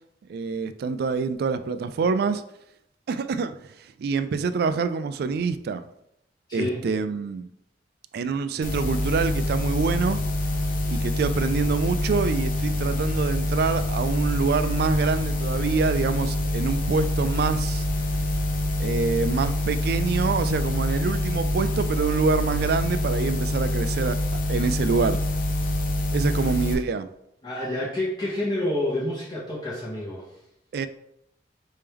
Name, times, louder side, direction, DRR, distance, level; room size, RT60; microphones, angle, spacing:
voice 1, 0.3-2.4 3.1-5.8 6.5-7.5 8.1-10.2 10.9-17.9 18.8-24.2 24.5-25.2 26.1-27.1 30.7-30.9, right 5 dB, 60° right, 12 dB, 0.3 m, -26 dB
voice 2, 6.5-6.8 26.4-26.5 27.4-30.2, left 1 dB, 25° left, -7 dB, 1.0 m, -28 dB
sound 1, 8.6-26.7, left 1 dB, 50° left, 0.7 m, -26 dB
4.3 x 3.4 x 3.5 m, 0.78 s
head